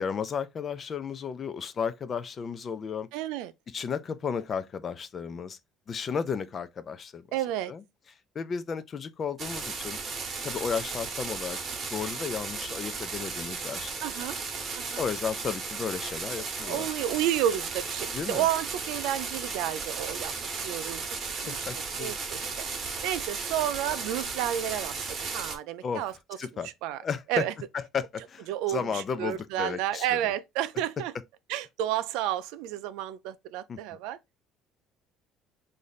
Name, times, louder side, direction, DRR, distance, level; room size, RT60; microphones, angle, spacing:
voice 1, 0.0-3.1 3.7-5.6 5.9-7.3 7.7-7.8 8.4-10.0 10.4-11.6 11.9-13.9 15.0-16.9 18.1-18.5 21.4-22.1 25.8-26.0 26.4-26.7 27.0-27.4 27.7-30.2 33.7-33.8, left 6 dB, 30° left, 0.4 m, -33 dB
voice 2, 3.1-3.5 7.3-7.7 14.0-14.4 14.8-15.0 16.3-22.6 23.0-25.0 25.3-26.1 26.6-27.0 27.3-27.5 28.5-31.1 31.5-34.2, right 12 dB, 85° right, 0.4 m, -31 dB
sound 1, 9.4-25.6, right 4 dB, 30° right, 0.9 m, -35 dB
3.1 x 2.6 x 3.9 m
cardioid pair, 160°, 0 cm